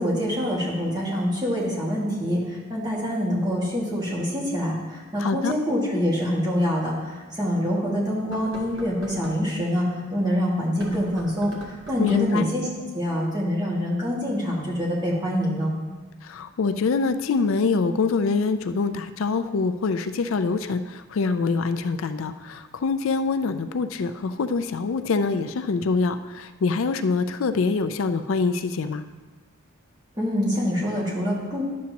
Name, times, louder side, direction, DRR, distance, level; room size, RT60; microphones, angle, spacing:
voice 1, 0.0-12.7 12.9-15.7 30.2-31.6, equal, 20° right, -5 dB, 1.9 m, -25 dB
voice 2, 5.2-5.5 12.0-12.5 16.2-29.0, left 4 dB, 70° left, 10 dB, 0.4 m, -25 dB
sound 1, 6.2-6.3 6.9-7.0 8.2-9.4 10.7-12.3, right 1 dB, 60° right, 1.6 m, -41 dB
11.0 x 7.3 x 2.9 m, 1.3 s
head